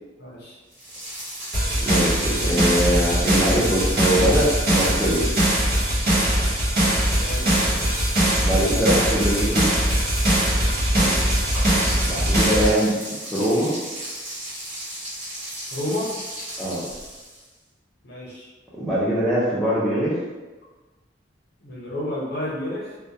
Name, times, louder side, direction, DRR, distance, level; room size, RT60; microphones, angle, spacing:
voice 1, 0.2-0.6 7.2-7.6 10.9-11.2 15.7-16.1 18.0-18.5 21.6-23.0, left 1 dB, 60° left, -5 dB, 0.8 m, -31 dB
sound 1, 0.7-17.5, right 1 dB, 90° right, 1.1 m, -36 dB
sound 2, 1.5-12.7, right 1 dB, 60° right, 1.0 m, -21 dB
voice 2, 1.8-5.3 8.4-9.7 12.0-13.0 13.3-13.8 16.6-16.8 18.8-20.2, equal, 5° left, -9 dB, 0.5 m, -22 dB
2.2 x 2.2 x 2.7 m, 1.2 s
head